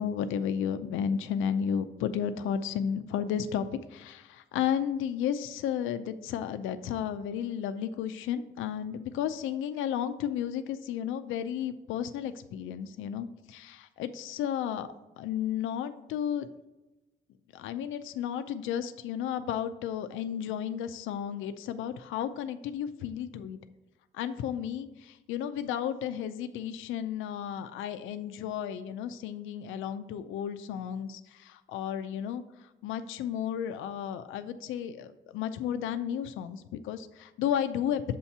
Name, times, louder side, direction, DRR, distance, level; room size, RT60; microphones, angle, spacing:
voice 1, 0.0-14.9 15.2-16.5 17.5-23.6 24.1-38.1, left 9 dB, 85° left, 10 dB, 0.4 m, -33 dB
7.5 x 2.8 x 5.8 m, 1.1 s
cardioid pair, 90°, 20 cm